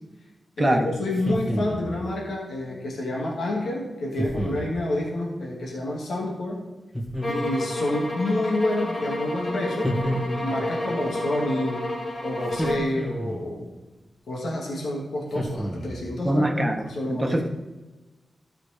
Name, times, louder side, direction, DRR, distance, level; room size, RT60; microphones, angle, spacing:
voice 1, 0.6-6.6 7.3-11.8 12.2-13.7 14.3-17.4, left 1 dB, 85° left, -3 dB, 2.3 m, -28 dB
sound 1, 1.1-2.0 4.2-4.8 6.9-7.7 9.8-10.7 12.5-13.5 15.3-16.1, equal, 15° left, 2.3 m, -30 dB
sound 2, 7.2-13.0, left 1 dB, 45° left, 2.8 m, -30 dB
voice 2, 16.2-17.4, right 1 dB, 25° right, 5 dB, 1.3 m, -23 dB
13.0 x 5.0 x 5.0 m, 1.2 s
cardioid pair, 60°, 0 cm